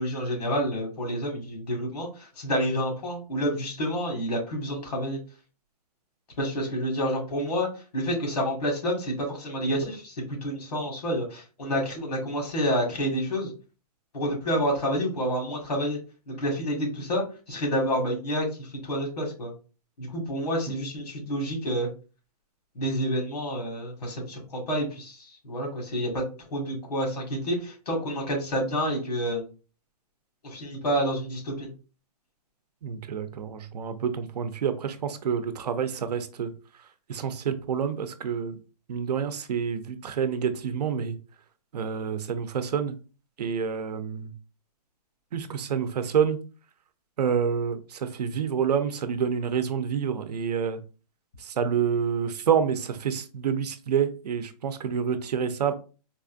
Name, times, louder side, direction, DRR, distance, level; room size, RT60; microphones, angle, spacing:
voice 1, 0.0-5.2 6.4-7.7 7.9-13.5 14.1-16.0 16.3-19.5 20.0-21.9 22.8-26.2 26.5-29.5 30.4-31.7, equal, 90° left, 1.9 m, -29 dB
voice 2, 32.8-36.5 37.1-38.6 38.9-41.2 41.7-42.9 43.4-44.3 45.3-46.4 47.2-50.8 51.4-55.7, right 7 dB, 80° right, 0.6 m, -28 dB
4.1 x 2.4 x 2.6 m
hypercardioid pair, 165°, 20 cm